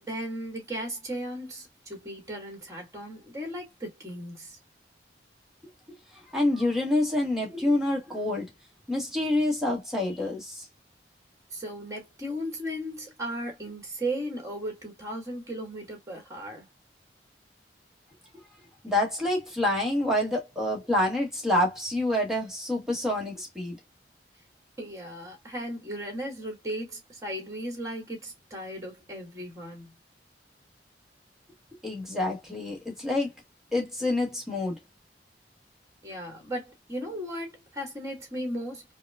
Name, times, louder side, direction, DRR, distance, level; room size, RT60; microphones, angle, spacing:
voice 1, 0.0-4.6 11.5-16.7 24.8-29.9 36.0-38.8, right 1 dB, 20° right, 1.8 m, -36 dB
voice 2, 6.3-8.5 8.9-10.6 18.8-23.8 31.8-33.3 33.7-34.8, left 1 dB, 5° right, 1.2 m, -27 dB
4.7 x 2.2 x 2.3 m
head